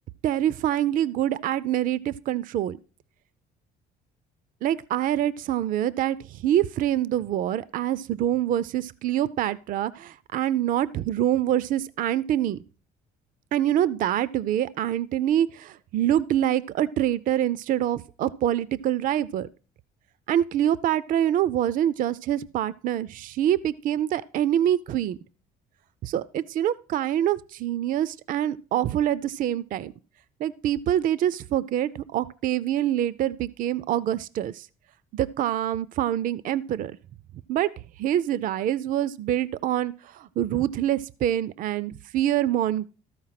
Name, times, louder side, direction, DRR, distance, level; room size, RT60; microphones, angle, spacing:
voice 1, 0.2-2.8 4.6-12.6 13.5-19.5 20.3-25.2 26.0-29.9 30.4-34.7 35.1-37.0 37.5-37.7 38.0-42.9, right 11 dB, 55° right, 18 dB, 0.4 m, -25 dB
13.5 x 4.6 x 5.7 m, 0.38 s
cardioid pair, 110°, 17 cm